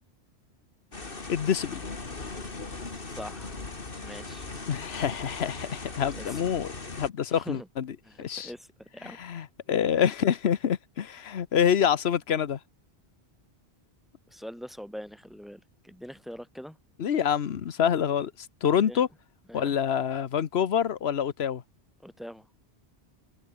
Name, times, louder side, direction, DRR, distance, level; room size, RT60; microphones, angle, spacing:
sound 1, 0.9-7.1, left 3 dB, 55° left, 2.5 m, -39 dB
voice 1, 1.3-1.8 4.7-7.9 8.2-8.5 9.0-12.6 17.0-18.3 18.6-19.1 19.5-21.6, left 8 dB, 75° left, 1.2 m, -26 dB
voice 2, 3.1-3.7 4.0-4.5 6.1-6.4 7.3-7.7 8.0-9.2 14.3-16.8 18.7-19.0 19.5-19.8 22.0-22.5, equal, ahead, 7.1 m, -43 dB
omnidirectional pair, 1.1 m